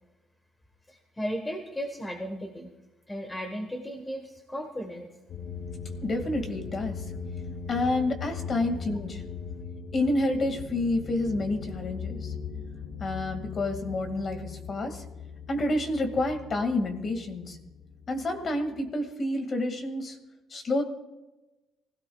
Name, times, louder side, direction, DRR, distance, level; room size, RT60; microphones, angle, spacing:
voice 1, 0.9-2.7 3.1-5.1, equal, 10° left, 4 dB, 1.3 m, -35 dB
sound 1, 5.3-18.9, left 5 dB, 65° left, 1.0 m, -39 dB
voice 2, 6.0-7.0 7.7-9.2 9.9-12.3 13.0-15.0 15.5-17.6 18.1-20.2 20.5-20.8, left 2 dB, 35° left, 5 dB, 2.1 m, -29 dB
24.0 x 16.5 x 2.4 m, 1.0 s
cardioid pair, 155°, 0 cm